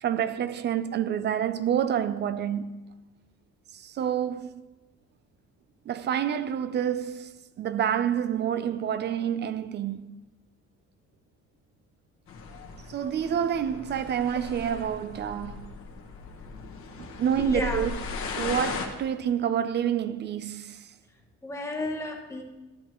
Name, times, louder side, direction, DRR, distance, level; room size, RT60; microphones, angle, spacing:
voice 1, 0.0-2.7 3.7-4.5 5.9-10.1 12.9-15.7 17.0-18.0 18.4-20.9, right 9 dB, 40° right, 0.4 m, -28 dB
sound 1, 12.3-18.9, left 4 dB, 50° left, 1.3 m, -37 dB
voice 2, 17.4-17.9 21.4-22.4, left 2 dB, 10° left, 1.1 m, -32 dB
12.0 x 10.0 x 3.0 m
cardioid pair, 165°, 29 cm